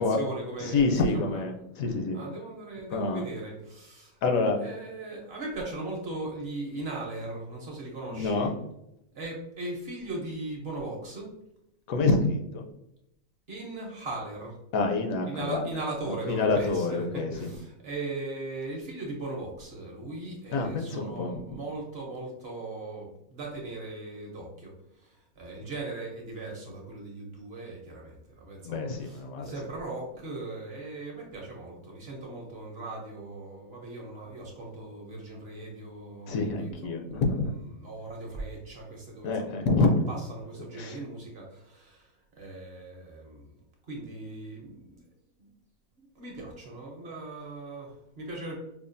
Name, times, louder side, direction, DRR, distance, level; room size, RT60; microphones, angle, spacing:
voice 1, 0.0-1.4 2.1-4.2 4.6-8.5 9.1-11.3 13.5-14.6 15.2-24.7 25.0-36.7 37.1-37.2 37.8-39.3 39.8-42.1 42.4-43.5 43.9-45.0 45.4-45.5 46.0-48.6, right 2 dB, 50° right, -2 dB, 0.9 m, -38 dB
voice 2, 0.6-2.2 2.9-3.2 4.2-4.6 8.1-8.6 11.9-12.6 14.7-15.6 16.0-17.5 20.5-21.3 28.6-29.5 36.3-37.5 39.2-40.0 40.8-41.0, left 3 dB, 75° left, 3 dB, 1.0 m, -27 dB
4.9 x 2.4 x 2.6 m, 0.81 s
omnidirectional pair, 1.5 m